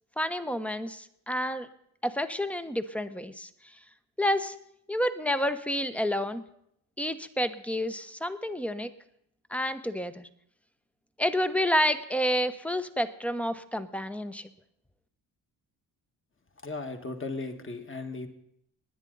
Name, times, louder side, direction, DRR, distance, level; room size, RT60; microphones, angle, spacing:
voice 1, 0.2-1.7 2.0-3.5 4.2-4.5 4.9-6.4 7.0-8.9 9.5-10.3 11.2-14.5, equal, 5° left, 11 dB, 0.9 m, -29 dB
voice 2, 16.6-18.3, left 3 dB, 25° left, 6 dB, 1.7 m, -36 dB
20.0 x 10.0 x 4.0 m, 0.74 s
supercardioid pair, 55°, 48 cm